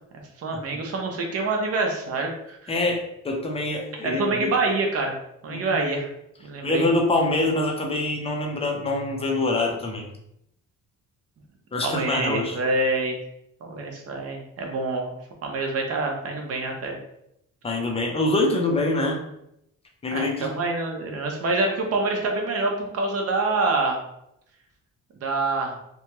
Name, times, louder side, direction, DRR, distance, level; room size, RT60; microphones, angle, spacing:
voice 1, 0.4-2.7 4.0-5.2 5.4-6.1 6.4-6.9 11.8-13.2 13.6-15.2 15.4-17.0 20.1-24.0 25.2-25.8, right 3 dB, 45° right, 2 dB, 0.6 m, -26 dB
voice 2, 2.7-4.5 5.5-5.8 6.6-10.1 11.7-12.6 17.6-19.2 20.0-20.5, left 2 dB, 20° left, 0 dB, 0.4 m, -25 dB
2.7 x 2.2 x 2.9 m, 0.78 s
cardioid pair, 150°, 34 cm